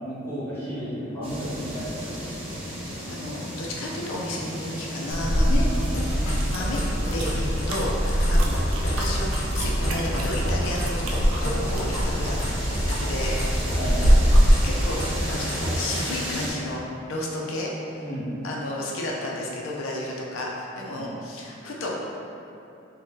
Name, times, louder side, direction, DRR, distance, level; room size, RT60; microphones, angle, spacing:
voice 1, 0.0-2.2 5.5-5.7 13.7-14.0 18.0-18.2 20.9-21.0, equal, 10° left, -12 dB, 0.8 m, -33 dB
sound 1, 1.2-16.5, equal, 30° right, 0.8 m, -35 dB
voice 2, 3.1-6.8 7.1-9.3 9.5-12.3 12.9-13.5 14.6-16.8 17.1-18.0 18.4-21.9, left 1 dB, 90° left, -3 dB, 0.4 m, -32 dB
sound 2, 5.1-14.8, equal, 80° right, 0.4 m, -23 dB
sound 3, 5.9-16.3, equal, 55° left, 0.7 m, -33 dB
2.6 x 2.1 x 3.6 m, 2.8 s
head